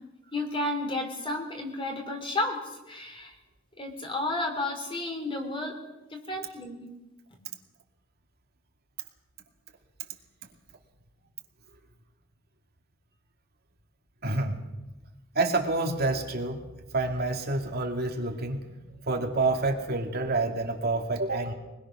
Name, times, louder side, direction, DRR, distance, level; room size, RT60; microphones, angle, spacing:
voice 1, 0.3-3.4 3.8-5.8 6.1-6.9, left 2 dB, 25° left, 4 dB, 3.6 m, -32 dB
voice 2, 14.2-14.6 15.3-16.6 16.9-21.5, right 2 dB, 50° right, 3 dB, 2.4 m, -28 dB
23.5 x 21.5 x 6.2 m, 1.0 s
head